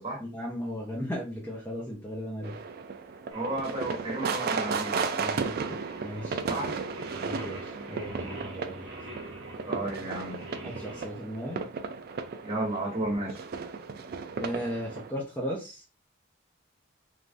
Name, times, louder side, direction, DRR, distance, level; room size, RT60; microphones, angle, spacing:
voice 1, 0.2-2.5 5.2-6.4 7.1-8.9 9.8-9.9 10.6-11.6 13.0-13.2 14.4-15.8, equal, 10° left, 0.6 m, -36 dB
sound 1, 2.4-15.1, right 5 dB, 45° right, 0.3 m, -35 dB
voice 2, 3.3-5.0 6.5-6.7 7.7-7.9 9.7-10.4 12.4-13.4, right 1 dB, 30° right, 1.3 m, -32 dB
Singing, 3.3-11.0, right 1 dB, 65° right, 0.9 m, -45 dB
3.3 x 2.5 x 2.5 m
head